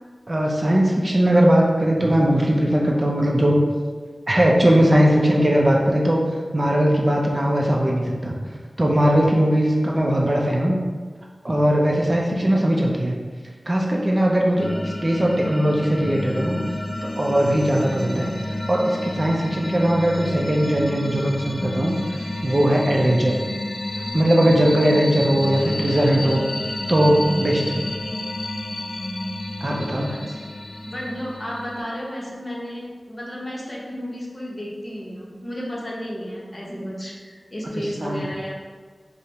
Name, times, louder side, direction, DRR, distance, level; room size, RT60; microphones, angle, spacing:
voice 1, 0.3-3.6 4.3-6.2 6.5-8.3 8.8-10.8 11.4-13.2 13.7-16.6 17.0-18.3 18.7-22.0 22.4-23.4 24.1-26.5 26.9-27.9 29.6-30.1 37.8-38.2, right 1 dB, 35° right, -1 dB, 0.5 m, -19 dB
sound 1, 14.6-31.8, left 1 dB, 60° left, 0.3 m, -30 dB
voice 2, 30.1-30.5 30.8-38.6, equal, 35° left, -4 dB, 0.8 m, -33 dB
5.0 x 2.0 x 2.8 m, 1.5 s
wide cardioid pair, 75°, 0 cm